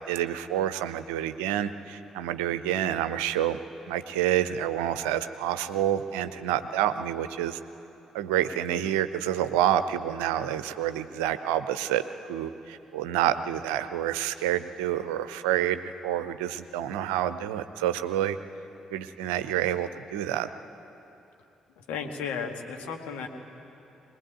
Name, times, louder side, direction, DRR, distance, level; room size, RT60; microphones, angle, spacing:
voice 1, 0.0-3.6 3.9-7.6 8.1-18.4 18.9-20.5, right 11 dB, 70° right, 12 dB, 0.7 m, -28 dB
voice 2, 21.8-23.3, left 6 dB, 65° left, 3 dB, 2.0 m, -34 dB
23.0 x 20.0 x 9.3 m, 2.9 s
figure-of-eight pair, 40°, 3 cm